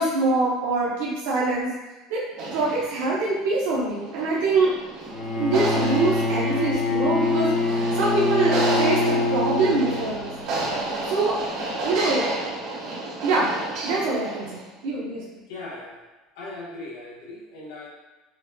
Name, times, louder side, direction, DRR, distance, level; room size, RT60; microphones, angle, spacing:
voice 1, 0.0-1.7 2.1-2.2 2.5-4.7 5.3-10.3 11.0-11.4 11.8-12.2 13.2-13.5 13.8-15.2, right 3 dB, 85° right, -6 dB, 0.8 m, -24 dB
sound 1, 2.3-14.7, right 2 dB, 65° right, 1.4 m, -31 dB
Bowed string instrument, 5.1-10.3, left 2 dB, 30° left, 0.8 m, -24 dB
voice 2, 15.5-16.0 16.3-17.9, left 2 dB, 85° left, -4 dB, 1.3 m, -38 dB
5.5 x 2.7 x 2.3 m, 1.2 s
cardioid pair, 135°, 0 cm